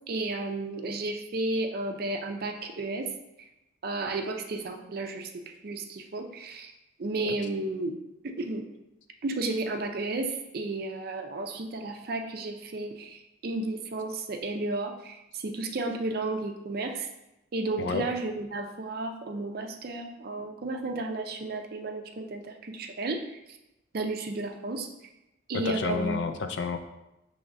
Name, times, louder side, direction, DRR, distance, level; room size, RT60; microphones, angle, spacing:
voice 1, 0.1-3.1 3.8-5.3 5.6-6.7 7.0-7.9 8.2-8.6 9.2-17.1 17.5-23.4 23.9-24.9 25.5-26.2, right 2 dB, 50° right, 5 dB, 0.5 m, -33 dB
voice 2, 25.5-26.8, left 4 dB, 65° left, 7 dB, 0.4 m, -30 dB
6.0 x 3.1 x 2.6 m, 0.91 s
head